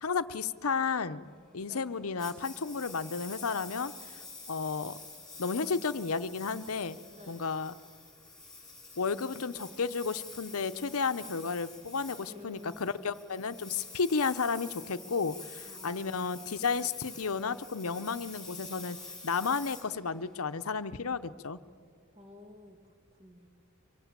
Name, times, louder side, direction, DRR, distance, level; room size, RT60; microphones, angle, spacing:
voice 1, 0.0-3.9 4.5-5.0 5.4-7.0 7.3-7.7 9.0-19.0 19.2-21.6, left 5 dB, 75° left, 12 dB, 0.8 m, -32 dB
voice 2, 1.7-2.1 7.1-7.5 12.3-13.0 15.6-16.2 22.2-23.5, left 1 dB, 30° right, 5 dB, 2.1 m, -52 dB
Engine, 2.2-20.6, left 3 dB, 5° left, 5.3 m, -48 dB
24.5 x 23.0 x 7.5 m, 2.2 s
head